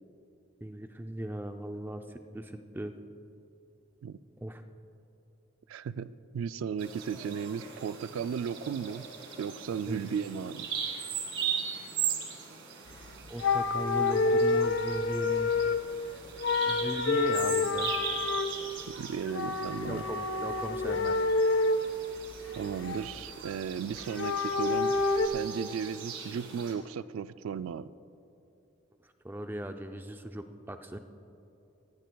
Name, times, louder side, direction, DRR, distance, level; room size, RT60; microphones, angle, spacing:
voice 1, 0.6-3.0 4.4-4.6 9.9-10.0 13.3-15.5 16.6-17.9 19.7-21.1 29.0-31.0, right 1 dB, 10° right, 7 dB, 0.4 m, -38 dB
voice 2, 5.7-9.1 9.4-10.7 19.0-20.0 22.6-24.9 25.2-27.9, right 7 dB, 85° right, 16 dB, 0.3 m, -35 dB
Bird vocalization bird call bird song, 6.8-26.7, right 7 dB, 70° right, 1.7 m, -39 dB
sound 1, 12.9-13.1 13.4-15.9 16.4-18.5 19.3-21.8 22.3-23.3 24.0-25.3, left 3 dB, 70° left, 0.6 m, -28 dB
18.0 x 15.0 x 2.3 m, 2.8 s
head